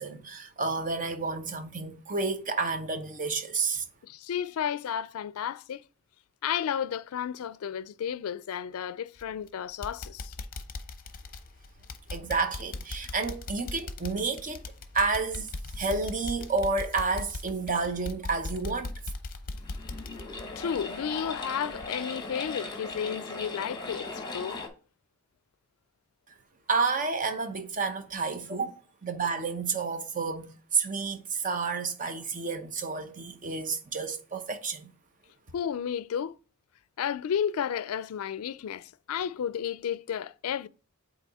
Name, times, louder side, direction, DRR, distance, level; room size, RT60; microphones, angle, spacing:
voice 1, 0.0-3.8 12.1-14.6 14.9-19.0 26.7-34.9, right 4 dB, 40° right, 0.7 m, -30 dB
voice 2, 4.0-5.8 6.4-10.3 20.6-24.6 35.5-36.4 37.0-40.7, left 8 dB, 90° left, 0.4 m, -32 dB
sound 1, 9.2-9.5 9.8-21.4 21.7-21.9 22.3-22.4, left 2 dB, 40° left, 0.6 m, -39 dB
sound 2, 19.5-24.7, left 3 dB, 20° left, 1.1 m, -38 dB
8.3 x 2.9 x 4.0 m
head